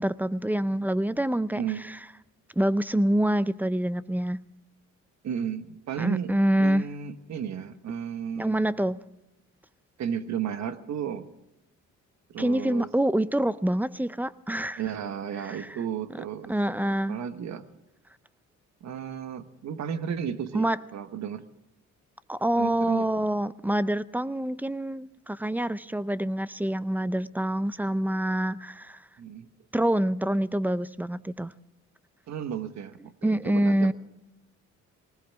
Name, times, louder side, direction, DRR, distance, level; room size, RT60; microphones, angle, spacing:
voice 1, 0.0-1.6 1.9-2.0 2.6-4.4 6.0-6.9 8.4-9.0 12.4-14.8 15.4-15.7 16.1-16.2 16.5-17.2 20.5-20.8 22.3-29.0 29.7-31.5 33.2-33.9, right 1 dB, 5° right, 17 dB, 0.5 m, -26 dB
voice 2, 1.5-1.9 5.2-8.6 10.0-11.3 12.3-12.9 14.8-16.5 16.9-17.6 18.8-21.4 22.6-23.3 29.2-29.5 32.3-33.9, right 8 dB, 65° right, 10 dB, 1.3 m, -34 dB
20.0 x 19.0 x 3.5 m, 0.92 s
cardioid pair, 90°, 30 cm